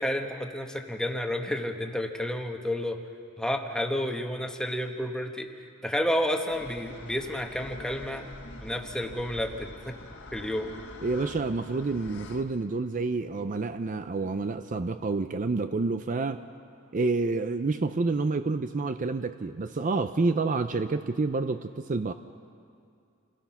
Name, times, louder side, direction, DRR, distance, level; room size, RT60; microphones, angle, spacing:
voice 1, 0.0-3.0 3.4-5.5 5.8-8.3 8.6-10.0 10.3-10.7, left 1 dB, 5° left, 3 dB, 1.2 m, -30 dB
sound 1, 6.5-12.4, left 2 dB, 60° left, 1.6 m, -45 dB
voice 2, 11.0-16.4 16.9-22.1, right 3 dB, 40° right, 10 dB, 0.5 m, -28 dB
28.0 x 17.5 x 5.8 m, 2.4 s
head